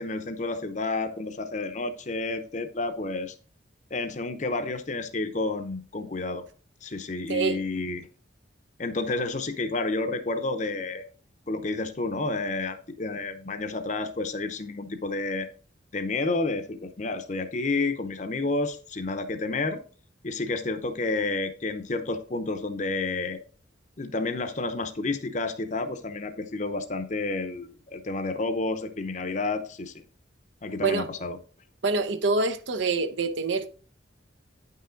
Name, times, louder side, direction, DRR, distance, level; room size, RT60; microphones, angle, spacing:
voice 1, 0.0-3.3 3.9-6.4 6.8-8.1 8.8-11.0 11.5-15.5 15.9-19.8 20.2-23.4 24.0-29.9 30.6-31.4, left 3 dB, 40° left, 0.7 m, -30 dB
voice 2, 31.8-33.8, right 3 dB, 75° right, 0.8 m, -26 dB
9.4 x 5.6 x 3.9 m
head